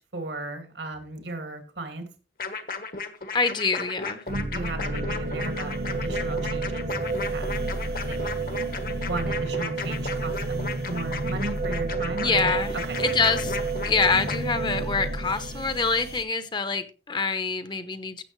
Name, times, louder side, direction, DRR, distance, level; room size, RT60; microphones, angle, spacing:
voice 1, 0.1-2.1 4.5-6.9 7.3-7.5 8.1-8.3 9.0-12.5 12.9-13.0 13.8-13.9, right 2 dB, 85° right, 6 dB, 2.3 m, -35 dB
sound 1, 2.4-14.4, left 4 dB, 50° left, 1.2 m, -35 dB
voice 2, 3.3-4.2 12.2-13.6 13.8-18.2, left 4 dB, 25° left, 11 dB, 0.8 m, -26 dB
sound 2, 4.3-16.2, right 3 dB, 60° right, 1.3 m, -30 dB
15.0 x 7.0 x 3.2 m, 0.34 s
head